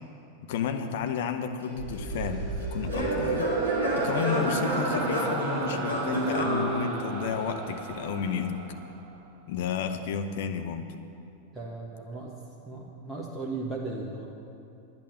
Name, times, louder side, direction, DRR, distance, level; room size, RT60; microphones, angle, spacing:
voice 1, 0.5-3.5 3.9-8.6 9.5-10.9, left 7 dB, 55° left, 6 dB, 0.8 m, -32 dB
Singing / Plucked string instrument, 1.6-7.5, equal, 90° left, 2.1 m, -31 dB
sound 1, 1.8-9.1, right 5 dB, 30° right, 1.4 m, -33 dB
voice 2, 11.5-12.4 12.7-14.3, right 3 dB, 10° right, -4 dB, 1.2 m, -36 dB
10.5 x 8.9 x 6.5 m, 2.6 s
figure-of-eight pair, 90°, 0 cm